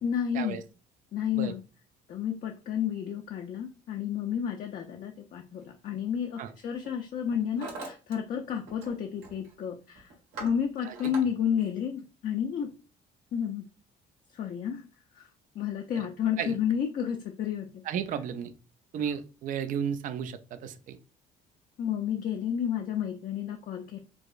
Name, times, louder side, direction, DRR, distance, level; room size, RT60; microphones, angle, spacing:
voice 1, 0.0-0.6 1.1-1.6 2.1-10.1 10.4-12.7 13.3-13.7 14.3-14.8 15.1-15.3 15.5-17.7 21.8-24.0, left 8 dB, 50° left, 2 dB, 0.5 m, -31 dB
Hammer, 5.6-5.9 6.6-6.9 7.2-8.2 8.4-8.9 9.2-9.5 10.0-11.2, right 3 dB, 80° right, 1.4 m, -42 dB
voice 2, 17.8-18.5 18.9-21.0, right 8 dB, 50° right, 10 dB, 0.4 m, -33 dB
4.7 x 2.0 x 2.5 m, 0.34 s
cardioid pair, 110°, 17 cm